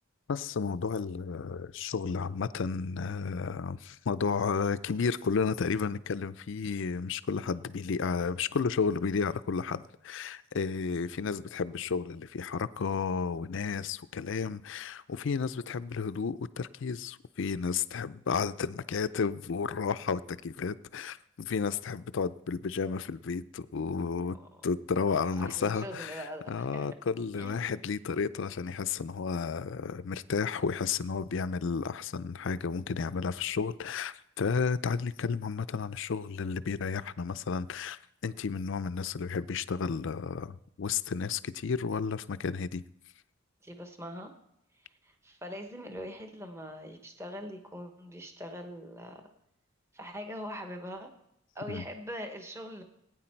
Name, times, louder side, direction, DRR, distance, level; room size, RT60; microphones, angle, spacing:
voice 1, 0.3-24.4 24.6-42.8 51.7-51.8, left 5 dB, 65° left, 0.5 m, -32 dB
voice 2, 25.1-26.9 27.4-27.7 43.6-44.3 44.9-49.2 49.9-51.1 51.5-52.8, equal, 15° right, 1.1 m, -42 dB
19.0 x 9.3 x 4.5 m
head